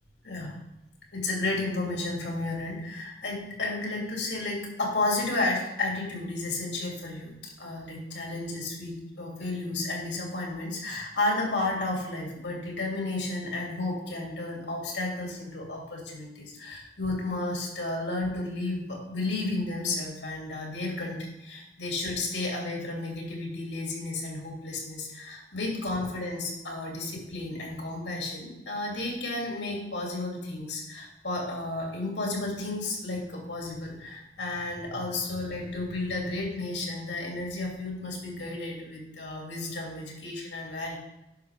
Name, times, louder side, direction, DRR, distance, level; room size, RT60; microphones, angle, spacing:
voice 1, 1.1-7.3 7.6-41.0, left 2 dB, 75° left, -2 dB, 2.7 m, -32 dB
10.5 x 5.8 x 3.5 m, 0.92 s
head